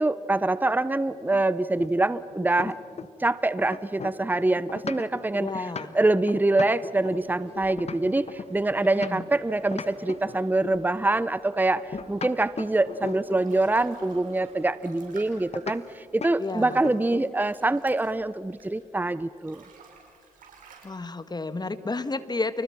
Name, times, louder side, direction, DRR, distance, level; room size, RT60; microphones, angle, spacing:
voice 1, 0.0-2.8 3.2-5.5 5.9-19.6, right 2 dB, 15° right, 16 dB, 0.9 m, -25 dB
sound 1, 1.3-3.3 3.6-9.4 9.7-10.9 11.8-13.5 15.5-15.8 16.2-16.4 16.7-17.3, left 5 dB, 50° left, 1.5 m, -38 dB
voice 2, 5.4-6.0 8.9-9.2 16.4-16.8 20.8-22.6, left 3 dB, 30° left, 12 dB, 1.8 m, -31 dB
sound 2, 7.0-14.7, right 3 dB, 45° right, 3.6 m, -52 dB
sound 3, 12.9-18.9 19.3-20.8, right 5 dB, 75° right, 6.3 m, -53 dB
30.0 x 29.0 x 6.0 m, 2.3 s
supercardioid pair, 50°, 14 cm